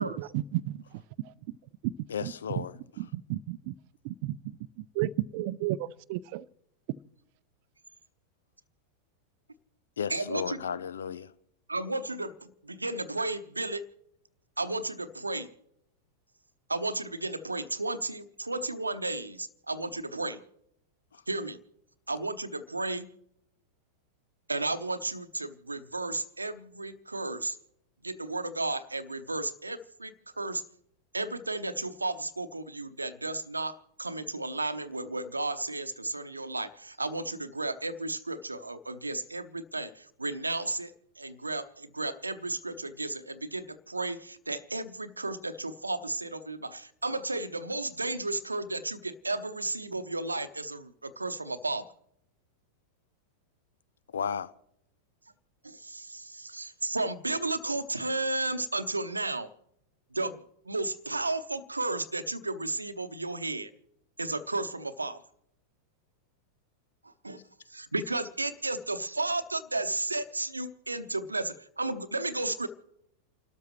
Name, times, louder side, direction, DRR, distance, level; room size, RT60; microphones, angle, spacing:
voice 1, 0.0-0.8 1.2-1.3 1.8-1.9 2.2-2.6 3.0-3.7 4.0-4.4 5.0-6.5, right 15 dB, 45° right, 0.5 m, -32 dB
voice 2, 2.1-2.7 10.0-11.3 21.1-21.2 54.1-54.5, left 7 dB, 65° left, 0.5 m, -34 dB
voice 3, 10.1-10.6 11.7-13.8 14.6-15.5 16.7-20.4 21.3-21.6 22.1-23.1 24.5-27.6 28.0-30.6 31.1-51.9 55.6-59.5 60.1-60.4 60.7-63.7 64.2-65.2 67.0-67.4 67.7-72.7, right 2 dB, 80° right, 0.8 m, -33 dB
29.5 x 13.0 x 3.1 m
figure-of-eight pair, 90°, 0 cm